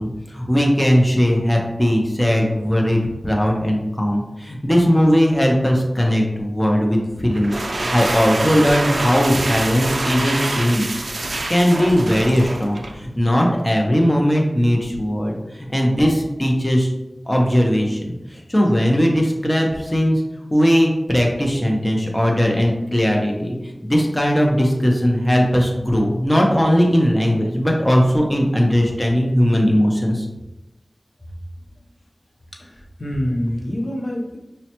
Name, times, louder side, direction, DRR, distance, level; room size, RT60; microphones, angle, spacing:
voice 1, 0.0-10.9 11.5-16.9 17.3-20.2 20.5-30.3, equal, 20° left, 0 dB, 0.7 m, -18 dB
sound 1, 7.3-13.0, right 2 dB, 75° right, 0.4 m, -25 dB
voice 2, 32.5-34.4, equal, 65° left, 0 dB, 0.6 m, -26 dB
5.3 x 2.2 x 2.9 m, 0.96 s
wide cardioid pair, 50°, 0 cm